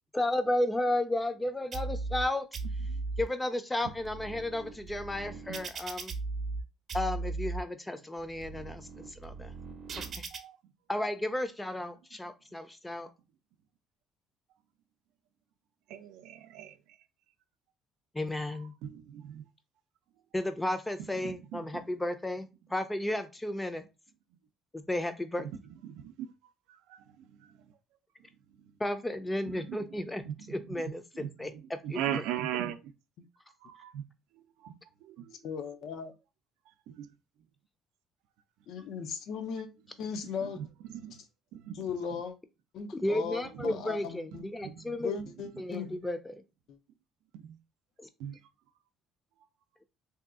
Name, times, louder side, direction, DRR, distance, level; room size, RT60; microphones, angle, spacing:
voice 1, 0.1-2.5 3.2-6.1 6.9-9.5 10.0-10.2 10.9-13.1 18.1-18.7 20.3-23.8 24.7-25.5 28.8-30.2 30.5-32.2 42.9-45.2 45.6-46.3 48.0-48.1, left 1 dB, 10° left, 0.5 m, -33 dB
sound 1, 1.7-2.2 2.5-3.2 3.8-6.6 6.9-7.6 8.2-10.4, right 3 dB, 45° right, 0.6 m, -37 dB
voice 2, 15.9-16.7 18.8-19.4 21.2-21.8 25.8-26.1 26.7-27.0 27.4-27.5 29.6-29.8 30.2-30.3 31.2-31.3 31.8-32.8 33.6-34.0 34.6-34.7 35.1-35.3 37.0-37.1 40.4-40.6 40.9-41.1 41.5-41.8 43.6-43.7 44.6-44.9 47.4-47.6 48.2-48.4, right 10 dB, 85° right, 0.4 m, -38 dB
voice 3, 35.4-36.1 38.7-39.7 40.0-40.6 41.1-41.2 41.7-42.4 42.7-44.5 45.0-46.0 46.7-46.8, left 6 dB, 70° left, 0.6 m, -37 dB
2.8 x 2.3 x 3.6 m
cardioid pair, 105°, 0 cm